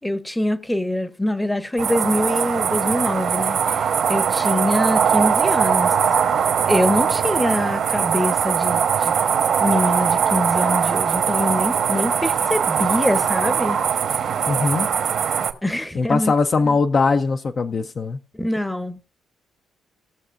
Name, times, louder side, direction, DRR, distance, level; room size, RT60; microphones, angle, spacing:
voice 1, 0.0-6.0 6.7-9.1 9.6-13.8 14.1-14.3 15.6-16.3 16.6-16.8 18.3-19.0, left 1 dB, 10° left, 0.7 m, -24 dB
sound 1, 1.8-15.5, right 7 dB, 65° right, 1.1 m, -21 dB
voice 2, 14.5-14.9 15.9-18.2, left 4 dB, 45° left, 0.5 m, -20 dB
19.0 x 6.6 x 2.5 m
cardioid pair, 90°, 0 cm